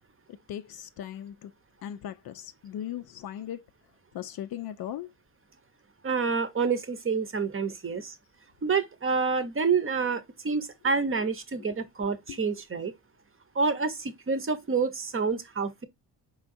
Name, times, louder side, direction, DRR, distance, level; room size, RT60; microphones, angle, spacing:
voice 1, 0.5-1.5 1.8-3.6 4.1-5.1 7.9-8.0 11.6-11.8 12.3-12.4, left 11 dB, 55° left, 0.5 m, -38 dB
voice 2, 6.0-8.1 8.6-12.9 13.5-15.9, right 5 dB, 25° right, 0.8 m, -28 dB
4.4 x 3.8 x 2.5 m
supercardioid pair, 65°, 47 cm